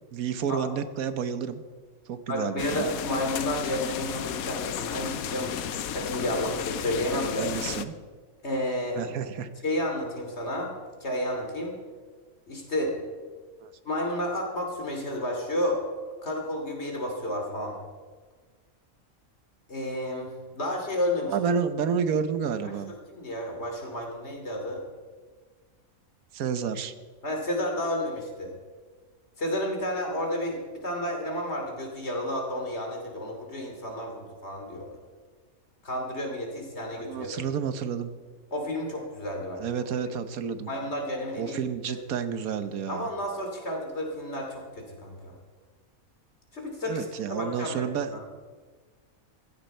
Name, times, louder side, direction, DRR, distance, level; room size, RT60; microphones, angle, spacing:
voice 1, 0.1-1.6 2.1-2.9 7.4-7.9 9.0-9.5 13.6-13.7 21.3-22.9 26.3-26.9 37.1-38.1 39.6-40.7 41.3-43.1 46.8-48.1, right 7 dB, 90° right, 11 dB, 1.4 m, -30 dB
voice 2, 2.3-7.5 8.4-9.0 9.6-10.7 11.0-11.8 12.5-13.0 13.8-15.8 16.2-17.8 19.7-21.3 22.9-24.8 27.2-28.5 29.4-35.0 35.8-37.3 38.5-39.6 40.7-41.9 42.9-45.3 46.5-48.2, left 1 dB, 50° left, 1 dB, 3.1 m, -31 dB
sound 1, 2.6-7.8, left 9 dB, 90° left, 1.2 m, -34 dB
15.5 x 14.5 x 4.4 m, 1.4 s
omnidirectional pair, 1.5 m